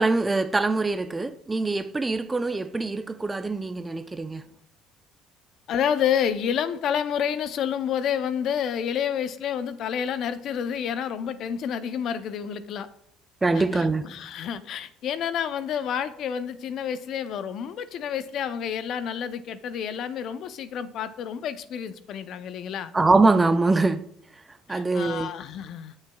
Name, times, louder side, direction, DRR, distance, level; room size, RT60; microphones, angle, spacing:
voice 1, 0.0-4.4 13.4-14.2 22.9-24.0 24.7-25.3, right 3 dB, 20° right, 0.5 m, -23 dB
voice 2, 5.7-12.9 13.5-22.9 24.7-25.9, left 8 dB, 60° left, 0.6 m, -29 dB
15.5 x 6.5 x 2.3 m
supercardioid pair, 85°, 0 cm